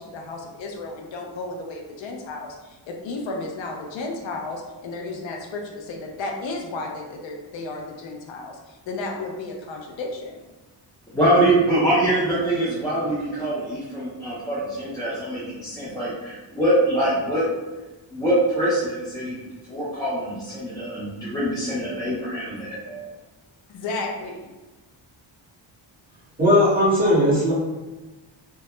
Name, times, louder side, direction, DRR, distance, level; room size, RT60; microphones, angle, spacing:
voice 1, 0.0-10.4 23.7-24.5, left 2 dB, 80° left, 1 dB, 0.5 m, -33 dB
voice 2, 11.1-17.4 18.1-19.4 19.7-23.1, right 1 dB, 10° left, -9 dB, 0.4 m, -24 dB
voice 3, 26.4-27.5, left 1 dB, 20° right, -7 dB, 0.9 m, -17 dB
2.2 x 2.0 x 2.9 m, 1.1 s
wide cardioid pair, 135°, 46 cm